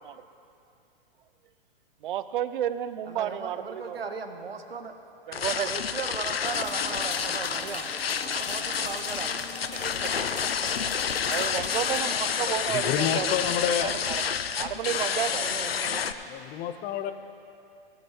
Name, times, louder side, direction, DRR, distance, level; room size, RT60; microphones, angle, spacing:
voice 1, 2.0-4.0 5.3-5.7 8.8-8.9 9.7-10.2 11.3-14.2 14.6-15.5, right 11 dB, 60° right, 14 dB, 0.6 m, -32 dB
voice 2, 3.1-4.9 5.5-7.9 8.2-9.4 15.3-16.0, right 5 dB, 85° right, 6 dB, 1.0 m, -37 dB
sound 1, 5.3-16.1, left 7 dB, 85° left, 0.7 m, -29 dB
sound 2, 6.5-16.4, left 5 dB, 65° left, 1.5 m, -41 dB
voice 3, 12.5-13.9 16.3-17.1, left 10 dB, 30° left, 10 dB, 0.7 m, -29 dB
19.0 x 13.0 x 3.0 m, 2.6 s
hypercardioid pair, 115°, 29 cm